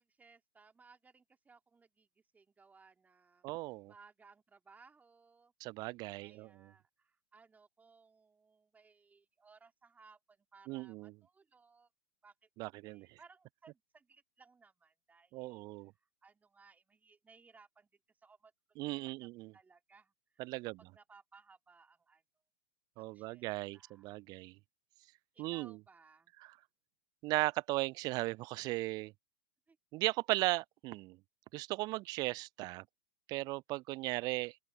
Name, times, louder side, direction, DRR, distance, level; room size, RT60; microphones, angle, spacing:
voice 1, 0.0-3.5 3.9-5.5 6.2-11.9 12.2-15.6 15.9-18.5 19.0-20.5 20.8-22.2 23.0-23.4 23.7-24.2 25.3-26.3 29.7-29.8, right 4 dB, 10° right, 2.5 m, -63 dB
voice 2, 3.4-3.9 5.6-6.7 10.7-11.1 12.6-13.2 15.3-15.9 18.8-19.5 20.4-20.8 23.0-24.6 25.4-25.8 27.2-29.1 29.9-31.2 31.5-32.8 33.3-34.6, right 21 dB, 30° right, 0.4 m, -37 dB
open air
figure-of-eight pair, 100°, 14 cm